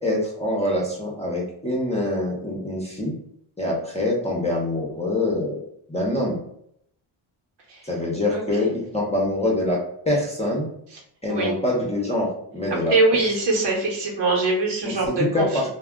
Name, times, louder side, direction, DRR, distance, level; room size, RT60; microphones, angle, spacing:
voice 1, 0.0-3.1 3.6-5.6 5.9-6.4 7.8-10.7 11.2-12.9 14.8-15.7, left 1 dB, 15° left, -2 dB, 0.7 m, -25 dB
voice 2, 8.3-8.7 11.3-11.6 12.9-15.7, right 2 dB, 60° right, -1 dB, 1.0 m, -23 dB
2.3 x 2.1 x 3.6 m, 0.70 s
cardioid pair, 105°, 48 cm